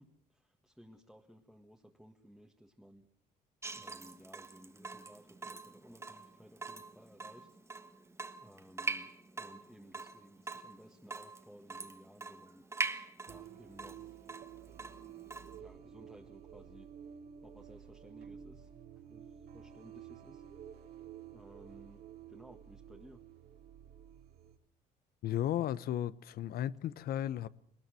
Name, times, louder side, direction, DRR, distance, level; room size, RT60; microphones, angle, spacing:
voice 1, 0.0-3.1 3.8-7.5 8.4-9.1 9.4-12.6 13.3-14.2 15.5-16.9 17.4-20.4 21.3-22.0 22.3-23.2, equal, ahead, 1.7 m, -58 dB
Water tap faucet / Drip, 3.6-15.6, right 3 dB, 15° right, 1.5 m, -43 dB
sound 1, 13.3-24.6, right 9 dB, 70° right, 3.1 m, -52 dB
voice 2, 25.2-27.5, left 11 dB, 65° left, 0.9 m, -34 dB
20.0 x 20.0 x 7.7 m
cardioid pair, 110°, 17 cm